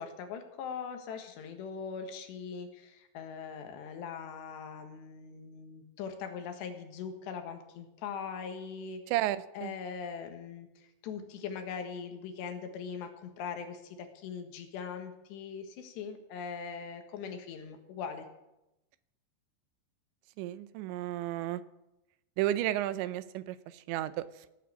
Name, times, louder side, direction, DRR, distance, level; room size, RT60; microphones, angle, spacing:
voice 1, 0.0-9.0 9.6-18.3, left 6 dB, 75° left, 6 dB, 3.6 m, -41 dB
voice 2, 9.1-9.7 20.4-21.6 22.4-24.5, right 13 dB, 85° right, 14 dB, 3.0 m, -33 dB
17.5 x 8.6 x 8.5 m, 0.92 s
omnidirectional pair, 5.2 m